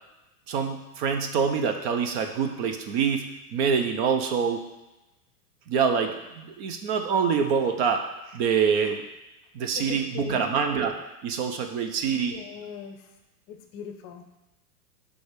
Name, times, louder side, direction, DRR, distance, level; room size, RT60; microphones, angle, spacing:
voice 1, 0.5-4.6 5.7-9.0 9.5-10.9 11.2-12.4, right 6 dB, 40° right, 6 dB, 0.7 m, -26 dB
voice 2, 9.7-10.4 12.3-13.0 13.5-14.2, left 8 dB, 35° left, 5 dB, 0.7 m, -39 dB
6.0 x 3.5 x 5.2 m, 1.0 s
hypercardioid pair, 100°, 47 cm